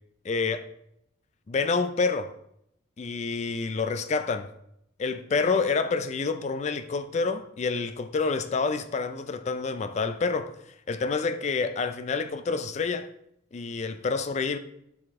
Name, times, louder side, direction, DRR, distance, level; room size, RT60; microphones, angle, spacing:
voice 1, 0.2-0.7 1.5-2.3 3.0-4.5 5.0-10.5 10.9-13.1 13.5-14.6, left 4 dB, 35° left, 0.3 m, -28 dB
7.6 x 4.9 x 3.6 m
head